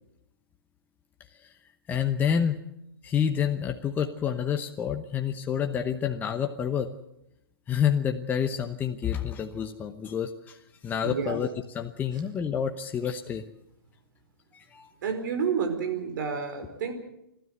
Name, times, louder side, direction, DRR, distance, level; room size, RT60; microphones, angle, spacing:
voice 1, 1.9-2.6 3.0-6.9 7.7-10.6 10.8-11.5 11.7-13.4 14.5-14.9, left 8 dB, 15° left, 5 dB, 0.9 m, -28 dB
voice 2, 11.0-11.4 15.0-16.9, right 6 dB, 55° right, 7 dB, 4.7 m, -29 dB
30.0 x 13.0 x 8.0 m, 0.84 s
hypercardioid pair, 135°, 12 cm